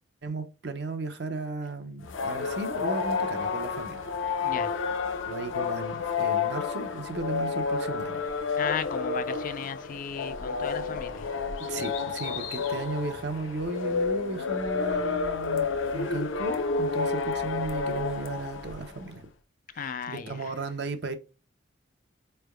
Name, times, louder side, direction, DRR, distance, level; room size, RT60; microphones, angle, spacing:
voice 1, 0.2-4.1 5.3-8.2 10.9-11.0 11.7-19.3 19.7-21.1, right 3 dB, 55° right, 0.6 m, -35 dB
sound 1, 2.0-19.0, left 5 dB, 85° left, 0.6 m, -30 dB
voice 2, 4.4-4.8 8.6-11.3 19.7-20.5, left 6 dB, 40° left, 0.3 m, -35 dB
4.6 x 3.3 x 2.3 m
head